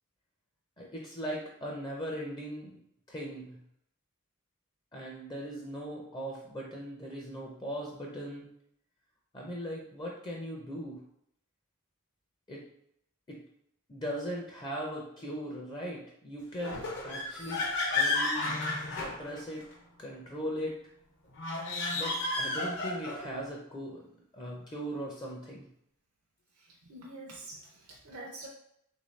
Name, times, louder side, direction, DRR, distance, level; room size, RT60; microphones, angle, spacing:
voice 1, 0.8-2.8 3.1-3.6 4.9-8.5 9.3-11.0 12.5-12.6 13.3-13.4 13.9-17.7 17.9-18.6 18.9-19.7 20.0-20.8 21.9-24.0 24.3-25.6, equal, 20° left, -1 dB, 0.4 m, -39 dB
sound 1, 16.6-19.7 21.3-23.3, left 2 dB, 55° left, 0.7 m, -32 dB
voice 2, 26.9-28.5, right 2 dB, 70° right, -2 dB, 0.5 m, -45 dB
3.4 x 2.6 x 3.1 m, 0.73 s
head